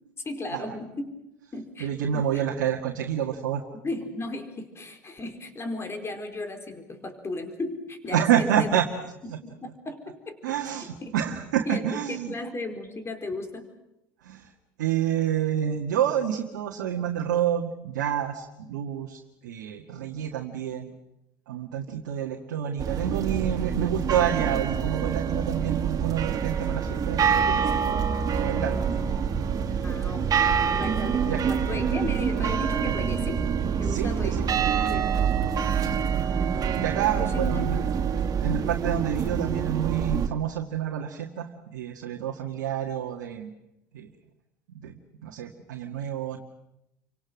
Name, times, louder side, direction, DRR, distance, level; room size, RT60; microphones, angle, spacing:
voice 1, 0.2-1.2 1.5-2.4 3.8-8.7 9.2-11.1 11.6-13.7 29.8-33.4 33.8-34.4 34.9-35.1 35.5-36.3 37.2-37.7, left 2 dB, 25° left, 6 dB, 4.7 m, -36 dB
voice 2, 1.8-3.6 8.1-8.9 10.4-12.3 14.2-14.5 14.8-20.9 21.5-28.0 28.4-28.9 29.7-30.0 31.2-31.5 33.8-34.4 36.8-37.8 38.4-43.5 43.9-44.1 44.7-46.4, right 9 dB, 75° right, 1 dB, 1.9 m, -28 dB
sound 1, 22.8-40.3, right 7 dB, 40° right, 2.5 m, -26 dB
29.5 x 25.0 x 6.3 m, 0.87 s
hypercardioid pair, 70°, 10 cm